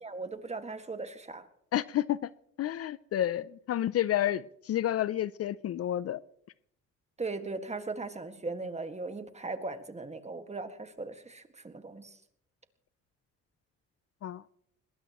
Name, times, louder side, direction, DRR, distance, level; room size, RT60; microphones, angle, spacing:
voice 1, 0.0-1.4 7.2-12.2, right 3 dB, 20° right, 8 dB, 1.8 m, -38 dB
voice 2, 1.7-2.3 2.6-6.2 14.2-14.4, left 12 dB, 55° left, 19 dB, 0.5 m, -30 dB
21.5 x 20.0 x 3.0 m, 0.69 s
cardioid pair, 80°, 29 cm